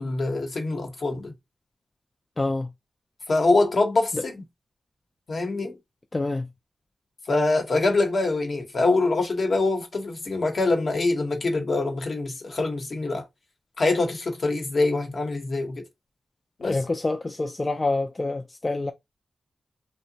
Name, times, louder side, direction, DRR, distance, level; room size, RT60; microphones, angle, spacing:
voice 1, 0.0-1.3 3.3-4.4 5.3-5.8 7.3-13.2 13.8-15.8 16.6-16.8, left 2 dB, 60° left, 0.9 m, -24 dB
voice 2, 2.4-2.7 4.1-4.2 6.1-6.5 16.6-18.9, left 2 dB, 35° left, 0.3 m, -27 dB
2.8 x 2.1 x 2.6 m
cardioid pair, 55°, 0 cm